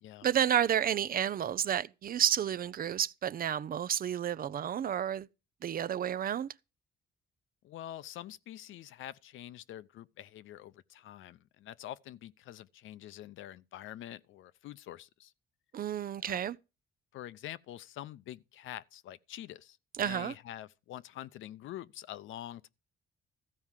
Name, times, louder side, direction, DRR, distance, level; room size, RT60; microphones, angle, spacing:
voice 1, 0.2-5.3 5.6-6.5 15.7-16.6 20.0-20.3, right 9 dB, 45° right, 0.5 m, -31 dB
voice 2, 7.6-15.3 16.2-16.4 17.1-19.8 20.0-22.7, left 12 dB, 80° left, 0.7 m, -46 dB
14.5 x 4.8 x 7.4 m
cardioid pair, 90°, 20 cm